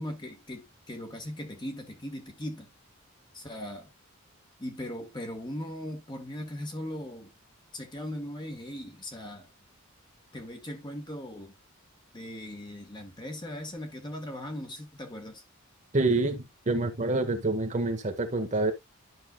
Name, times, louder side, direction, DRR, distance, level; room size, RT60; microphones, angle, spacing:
voice 1, 0.0-2.7 3.3-3.9 4.6-7.3 7.7-9.5 10.3-11.5 12.1-15.4, left 1 dB, 20° left, 1.6 m, -39 dB
voice 2, 15.9-18.7, right 2 dB, 35° right, 1.1 m, -27 dB
11.0 x 5.7 x 2.3 m
head